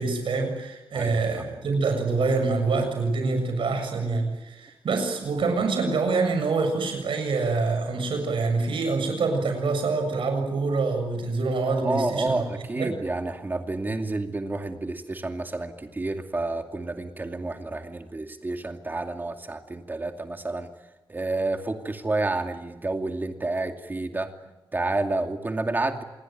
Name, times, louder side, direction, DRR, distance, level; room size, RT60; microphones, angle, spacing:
voice 1, 0.0-12.5 12.8-13.0, right 3 dB, 75° right, 5 dB, 7.1 m, -26 dB
voice 2, 0.9-1.4 11.8-20.7 21.1-24.3 24.7-26.0, right 2 dB, 20° right, 5 dB, 2.5 m, -29 dB
27.5 x 21.5 x 9.2 m, 1.1 s
wide cardioid pair, 165°, 9 cm